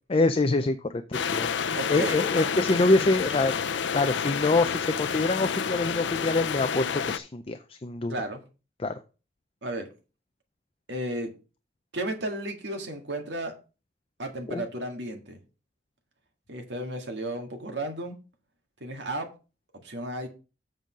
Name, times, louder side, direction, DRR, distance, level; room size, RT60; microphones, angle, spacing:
voice 1, 0.1-3.5 3.9-8.1 8.8-8.9 14.5-14.6, left 2 dB, 30° left, 0.5 m, -25 dB
sound 1, 1.1-7.2, left 6 dB, 85° left, 0.5 m, -29 dB
voice 2, 1.8-2.2 8.1-8.4 9.6-9.9 10.9-11.3 11.9-13.5 14.2-15.4 16.5-18.2 18.8-19.3 19.8-20.3, right 1 dB, 75° right, 1.9 m, -33 dB
7.9 x 5.4 x 5.1 m
head